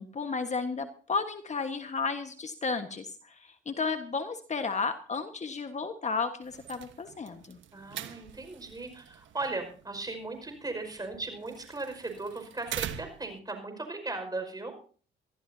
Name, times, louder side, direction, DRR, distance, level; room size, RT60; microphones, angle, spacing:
voice 1, 0.0-7.6, left 4 dB, 35° left, 7 dB, 1.4 m, -33 dB
sound 1, 6.4-13.4, right 10 dB, 75° right, 1.4 m, -44 dB
voice 2, 7.7-14.8, right 3 dB, 20° right, 6 dB, 5.4 m, -37 dB
23.5 x 14.5 x 2.8 m, 0.41 s
cardioid pair, 90°, 20 cm